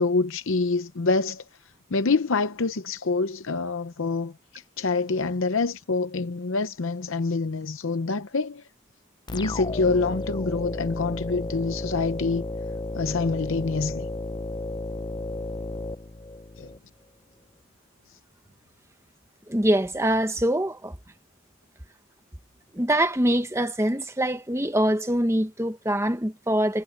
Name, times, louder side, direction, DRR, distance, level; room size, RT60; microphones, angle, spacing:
voice 1, 0.0-1.4 1.9-8.6 9.3-12.4 13.0-14.1 16.6-16.7, left 3 dB, 65° left, 0.7 m, -26 dB
sound 1, 9.3-16.8, left 2 dB, 20° left, 0.4 m, -33 dB
voice 2, 19.5-20.9 22.7-26.8, right 1 dB, 10° right, 1.1 m, -24 dB
head